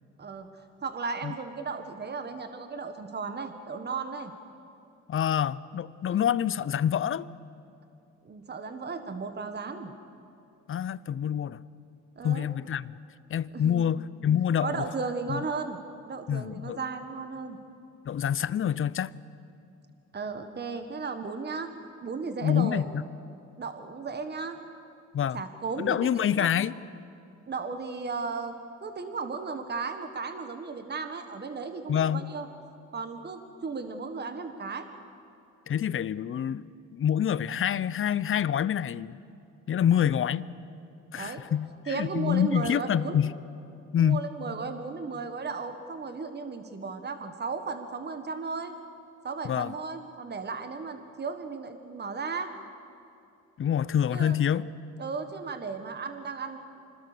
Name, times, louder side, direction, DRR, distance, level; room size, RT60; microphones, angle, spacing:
voice 1, 0.2-4.3 8.2-9.9 12.2-12.5 13.5-13.9 14.6-15.8 16.1-17.6 20.1-21.7 22.0-22.8 23.6-24.6 25.3-26.5 27.5-28.5 28.8-32.5 32.9-34.9 39.9-40.0 41.1-41.4 41.9-43.2 44.0-48.7 49.2-52.5 54.1-54.4 55.0-56.6, right 4 dB, 35° right, 8 dB, 1.6 m, -35 dB
voice 2, 5.1-7.3 10.7-11.6 12.2-12.9 13.3-14.8 15.3-15.4 16.3-16.8 18.1-19.1 22.4-23.1 25.1-25.4 25.8-26.7 31.9-32.3 35.7-39.2 39.7-40.5 41.1-43.3 43.9-44.3 49.4-49.7 53.6-54.7, left 9 dB, 45° left, 18 dB, 0.6 m, -27 dB
26.0 x 20.5 x 6.8 m, 2.6 s
cardioid pair, 90°, 30 cm